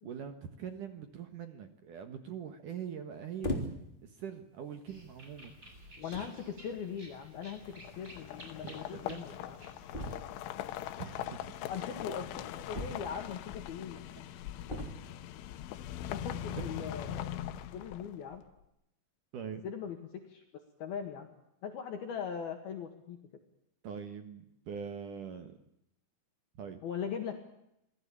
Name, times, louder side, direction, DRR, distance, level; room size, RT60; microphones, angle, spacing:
voice 1, 0.0-3.6 4.0-5.5 8.6-9.3 11.0-11.5 19.3-19.6 23.8-25.6 26.6-26.8, right 7 dB, 65° right, 8 dB, 2.1 m, -43 dB
sound 1, 3.4-4.0 4.8-5.0 5.8-5.9 6.1-6.4 7.6-7.7 8.0-8.1 8.3-8.4 9.9-10.5 12.7-13.4 14.7-15.3 16.5-17.0, left 1 dB, 15° left, 2.6 m, -39 dB
sound 2, 4.9-10.2, right 1 dB, 15° right, 7.4 m, -54 dB
voice 2, 6.0-7.6 8.0-9.6 11.7-14.0 16.1-17.3 17.7-18.4 19.6-20.4 20.8-21.3 21.6-23.2 26.8-27.4, left 7 dB, 60° left, 4 dB, 3.3 m, -40 dB
sound 3, 7.5-18.4, left 11 dB, 75° left, 3.4 m, -42 dB
27.0 x 18.5 x 8.7 m, 0.80 s
omnidirectional pair, 5.8 m